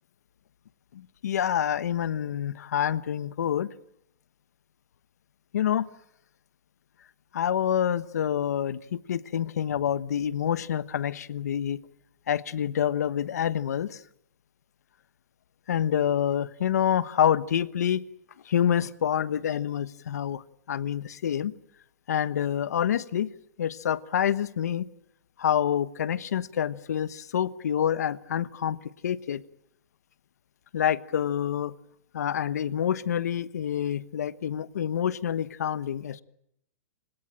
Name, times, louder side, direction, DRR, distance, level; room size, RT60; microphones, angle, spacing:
voice 1, 0.9-3.7 5.5-5.9 7.3-11.8 12.3-14.0 15.7-18.0 18.5-20.4 20.7-21.5 22.1-23.3 23.6-24.9 25.4-28.8 29.0-29.4 30.7-31.7 32.1-36.2, left 9 dB, 80° left, 16 dB, 1.2 m, -27 dB
30.0 x 18.0 x 9.0 m, 0.74 s
supercardioid pair, 180°, 9 cm